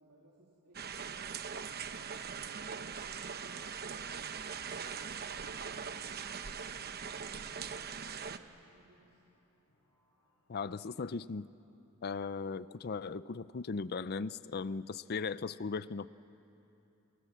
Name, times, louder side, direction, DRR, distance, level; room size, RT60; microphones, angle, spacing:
voice 1, 0.0-3.3 3.6-9.2, right 2 dB, 90° right, -5 dB, 3.4 m, -63 dB
sound 1, 0.7-8.4, right 6 dB, 45° right, 0.9 m, -41 dB
sound 2, 3.1-11.2, left 4 dB, 80° left, 5.5 m, -68 dB
voice 2, 10.5-11.5 12.0-16.1, left 4 dB, 45° left, 16 dB, 0.5 m, -38 dB
29.5 x 27.0 x 7.5 m, 2.9 s
head